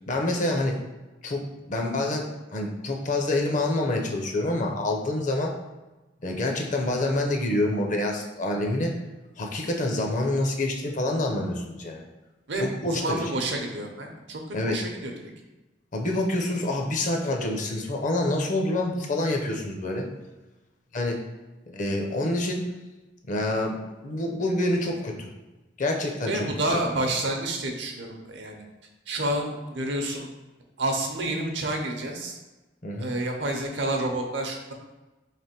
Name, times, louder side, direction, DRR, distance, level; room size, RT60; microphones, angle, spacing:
voice 1, 0.1-0.8 1.2-5.5 6.2-8.9 9.4-12.1 12.6-13.3 14.5-14.8 15.9-20.1 20.9-21.2 21.7-22.6 23.3-25.3 25.8-26.5 32.8-33.1, left 1 dB, 45° left, 2 dB, 0.6 m, -27 dB
voice 2, 12.5-15.1 26.3-28.6 29.1-30.3 30.8-32.4 33.0-34.7, right 1 dB, 70° right, 3 dB, 0.7 m, -29 dB
3.3 x 3.0 x 4.4 m, 1.1 s
head